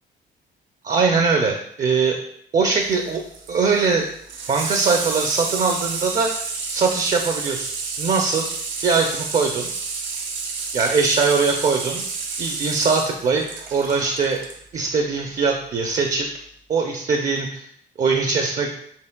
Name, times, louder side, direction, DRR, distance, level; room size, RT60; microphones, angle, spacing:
voice 1, 0.8-2.2 2.5-3.2 3.5-4.1 4.5-7.7 8.0-8.5 8.8-9.7 10.7-12.0 12.4-13.5 13.7-14.4 14.7-16.3 16.7-17.7 18.0-18.7, right 4 dB, 40° right, 2 dB, 0.5 m, -21 dB
Water tap faucet / Sink (filling or washing), 2.7-14.6 15.9-16.0, right 4 dB, 70° right, 0.7 m, -30 dB
4.4 x 3.1 x 2.2 m, 0.67 s
cardioid pair, 90°, 20 cm